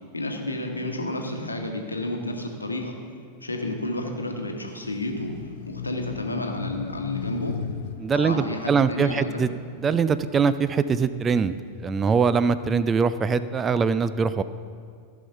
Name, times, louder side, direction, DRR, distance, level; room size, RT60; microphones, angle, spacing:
voice 1, 0.1-2.9 3.4-5.3 5.7-7.6 8.1-9.4, left 1 dB, 80° left, 3 dB, 1.1 m, -31 dB
sound 1, 4.8-10.4 10.9-12.8, left 8 dB, 55° left, 0.4 m, -37 dB
voice 2, 8.0-9.5 9.8-11.5 11.8-14.4, right 5 dB, 20° right, 14 dB, 0.3 m, -22 dB
14.5 x 5.6 x 5.6 m, 2.1 s
figure-of-eight pair, 90°, 0 cm